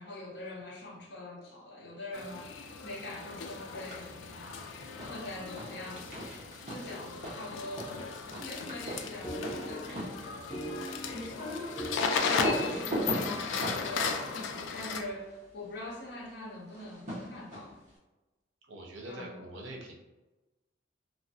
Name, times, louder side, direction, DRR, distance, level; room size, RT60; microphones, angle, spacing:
voice 1, 0.0-4.6 5.0-6.1 6.6-8.0 8.3-11.2 11.9-17.8 19.0-19.4, left 2 dB, 65° left, -3 dB, 0.7 m, -43 dB
sound 1, 2.1-15.0, left 5 dB, 85° left, 0.3 m, -36 dB
sound 2, 3.6-4.2 4.4-15.5 16.7-17.9, equal, 40° right, 0.8 m, -40 dB
sound 3, 8.7-13.0, right 1 dB, 5° left, 0.5 m, -42 dB
voice 2, 18.7-20.0, right 1 dB, 90° right, 0 dB, 0.6 m, -44 dB
3.4 x 2.1 x 2.7 m, 1.1 s
head